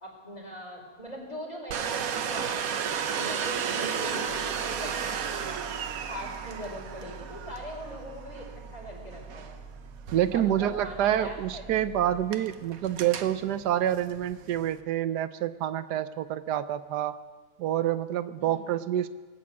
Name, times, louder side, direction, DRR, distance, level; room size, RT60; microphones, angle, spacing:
voice 1, 0.0-5.6 6.1-9.6 10.3-11.6 18.4-18.6, equal, 25° left, -2 dB, 4.0 m, -41 dB
Domestic sounds home sounds, 1.7-14.8, right 7 dB, 65° right, 1.2 m, -35 dB
sound 1, 4.3-12.3, right 4 dB, 40° right, 0.6 m, -47 dB
voice 2, 10.1-17.2 17.6-19.1, right 11 dB, 85° right, 12 dB, 1.3 m, -27 dB
20.0 x 8.6 x 8.3 m, 1.4 s
omnidirectional pair, 1.7 m